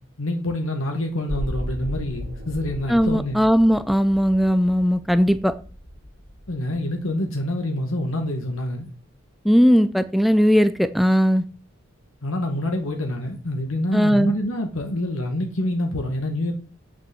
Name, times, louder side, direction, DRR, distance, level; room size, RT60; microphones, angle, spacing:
voice 1, 0.2-3.4 6.5-8.9 12.2-16.5, left 1 dB, 80° left, 2.0 m, -26 dB
sound 1, 1.3-7.2 7.6-7.7, equal, 75° right, 2.4 m, -35 dB
voice 2, 2.9-5.5 9.4-11.4 13.9-14.3, equal, ahead, 0.5 m, -18 dB
8.6 x 7.2 x 7.9 m
head